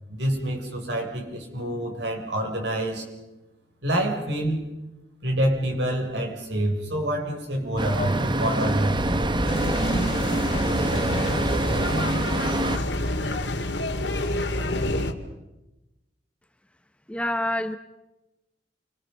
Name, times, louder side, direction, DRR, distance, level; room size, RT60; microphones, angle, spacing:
voice 1, 0.1-3.1 3.8-4.7 5.2-9.4, right 1 dB, 75° right, 2 dB, 6.9 m, -27 dB
Traffic noise roadway noise, 7.8-12.8, right 2 dB, 25° right, 1.2 m, -25 dB
sound 1, 9.4-15.1, left 1 dB, 80° left, 2.3 m, -27 dB
voice 2, 17.1-17.8, left 1 dB, 5° left, 9 dB, 0.9 m, -26 dB
29.5 x 26.5 x 5.5 m, 1.0 s
head